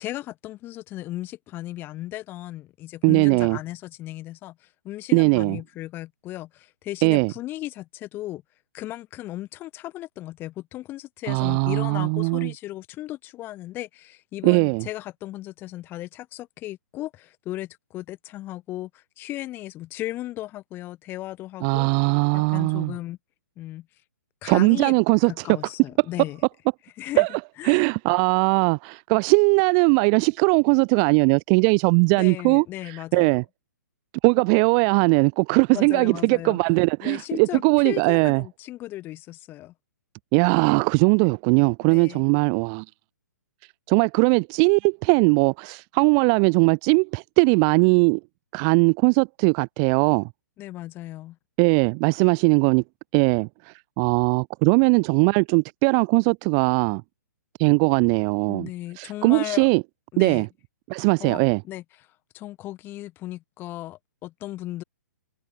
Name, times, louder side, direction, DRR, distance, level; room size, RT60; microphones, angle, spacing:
voice 1, 0.0-8.4 8.7-21.9 22.3-23.2 23.6-23.9 24.4-24.9 25.3-26.4 27.0-27.3 27.6-27.8 32.1-33.4 35.7-36.6 37.0-39.7 41.8-42.2 50.6-51.4 58.5-59.7 60.1-60.5 61.2-62.1 62.3-64.8, left 15 dB, 20° left, 2.6 m, -36 dB
voice 2, 3.0-3.6 5.1-5.6 7.0-7.3 11.3-12.5 14.4-14.9 21.6-22.9 24.4-25.3 27.2-33.4 34.2-38.4 40.3-42.8 43.9-48.2 48.5-50.3 51.6-52.8 53.1-57.0 57.6-58.7 59.0-59.8 60.2-60.5 60.9-61.6, right 40 dB or more, 25° right, 0.4 m, -20 dB
figure-of-eight pair, 120°, 10 cm